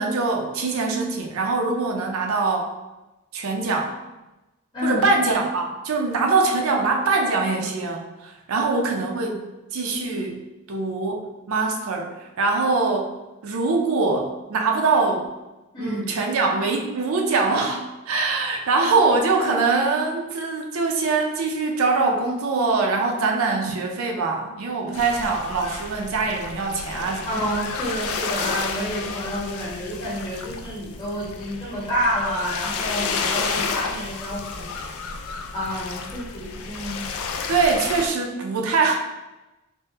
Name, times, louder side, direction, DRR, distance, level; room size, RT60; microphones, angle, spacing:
voice 1, 0.0-2.7 3.3-3.9 4.8-9.5 9.7-10.4 10.7-13.1 13.4-15.3 15.8-27.3 37.5-39.0, right 3 dB, 80° right, 1 dB, 0.5 m, -23 dB
voice 2, 15.7-16.1 27.2-34.8 35.5-37.0, equal, 20° left, -8 dB, 1.2 m, -29 dB
sound 1, 24.9-38.1, left 5 dB, 80° left, 0.3 m, -31 dB
3.5 x 2.1 x 2.8 m, 1.0 s
head